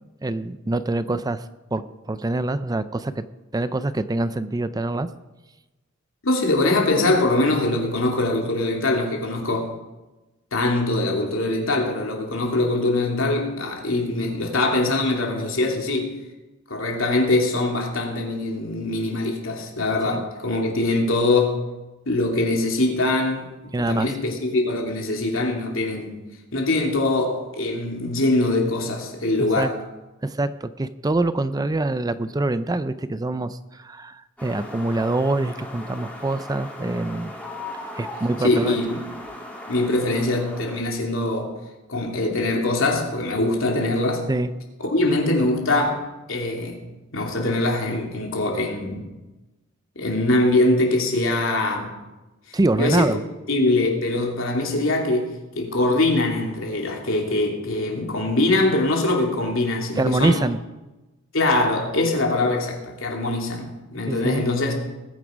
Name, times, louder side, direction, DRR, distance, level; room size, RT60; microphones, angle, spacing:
voice 1, 0.2-1.4 1.7-3.2 3.5-5.1 20.1-20.2 23.7-24.1 29.4-29.7 30.2-37.3 37.9-38.8 44.3-44.5 52.5-53.2 60.0-60.6 64.1-64.5, right 2 dB, 20° right, 0.5 m, -25 dB
voice 2, 6.2-9.7 10.5-16.1 16.7-21.6 22.1-26.3 26.5-29.7 38.4-39.0 39.7-41.5 41.9-44.2 44.8-46.0 46.3-46.8 47.1-49.1 49.9-51.9 52.8-53.2 53.5-60.4 61.3-64.7, left 2 dB, 70° left, 3.0 m, -23 dB
sound 1, 34.4-40.8, left 1 dB, 10° left, 2.7 m, -38 dB
20.0 x 9.6 x 5.2 m
head